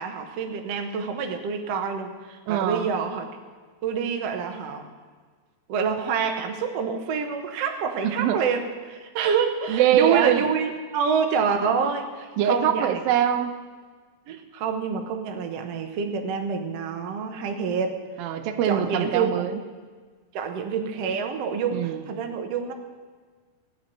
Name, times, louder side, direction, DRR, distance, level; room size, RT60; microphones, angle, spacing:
voice 1, 0.0-3.3 3.8-4.9 5.7-13.0 14.3-18.0 18.7-19.4 20.3-22.7, right 6 dB, 60° right, 5 dB, 1.8 m, -27 dB
voice 2, 2.5-2.9 8.0-8.4 9.7-10.4 12.4-13.6 18.2-19.6 21.7-22.0, right 10 dB, 85° right, 8 dB, 2.6 m, -23 dB
17.0 x 6.1 x 9.3 m, 1.5 s
omnidirectional pair, 4.0 m